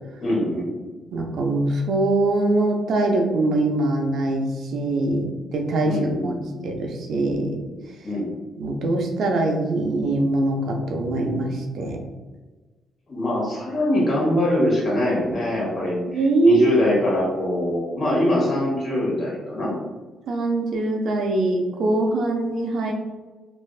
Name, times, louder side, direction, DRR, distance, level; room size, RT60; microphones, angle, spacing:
voice 1, 0.2-0.7 5.8-6.7 8.0-8.3 13.1-19.7, left 1 dB, 45° left, -4 dB, 1.4 m, -23 dB
voice 2, 1.1-4.4 4.7-6.0 6.2-6.3 6.6-7.6 8.6-12.0 16.1-16.8 20.3-22.9, right 2 dB, 70° right, 2 dB, 0.5 m, -22 dB
3.2 x 2.6 x 2.3 m, 1.3 s
cardioid pair, 90°, 0 cm